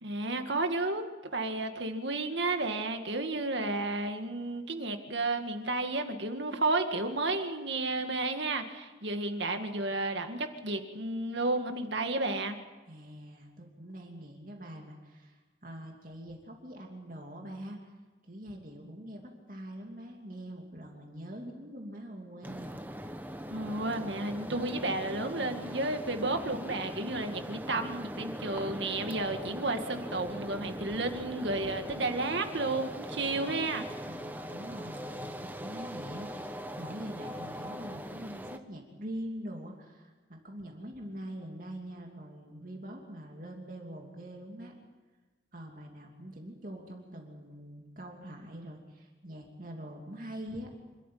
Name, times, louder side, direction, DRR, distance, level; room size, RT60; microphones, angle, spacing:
voice 1, 0.0-12.6 23.5-33.8, right 2 dB, 75° right, 6 dB, 2.0 m, -32 dB
voice 2, 12.9-17.8 18.2-22.8 34.0-44.7 45.5-50.7, equal, 45° right, 1 dB, 2.9 m, -44 dB
sound 1, 22.4-38.6, equal, 10° right, 1.0 m, -41 dB
26.5 x 13.5 x 9.3 m, 1.3 s
head